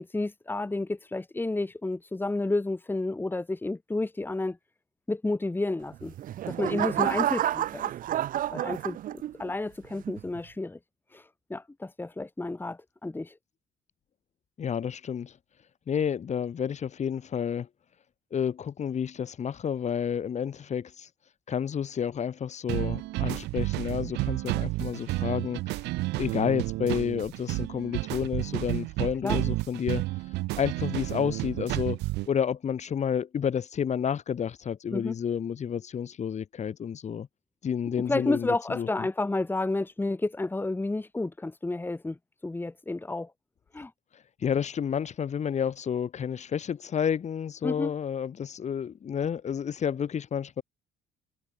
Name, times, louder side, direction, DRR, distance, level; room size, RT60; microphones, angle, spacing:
voice 1, 0.0-4.6 5.1-6.1 6.5-7.9 8.5-9.0 9.4-10.8 11.1-11.2 11.5-13.3 29.2-29.4 34.9-35.2 38.1-42.2 42.4-43.3 43.7-43.9 47.6-47.9, left 2 dB, 10° left, 2.5 m, -31 dB
sound 1, 5.9-9.5 10.0-10.4, right 12 dB, 55° right, 0.7 m, -30 dB
voice 2, 14.6-15.3 15.9-17.7 18.3-21.1 21.5-25.8 26.2-30.0 30.6-32.0 32.3-37.3 37.6-38.9 44.4-50.6, left 8 dB, 45° left, 3.2 m, -30 dB
sound 2, 22.7-32.3, right 20 dB, 85° right, 1.0 m, -31 dB
cardioid pair, 110°, 17 cm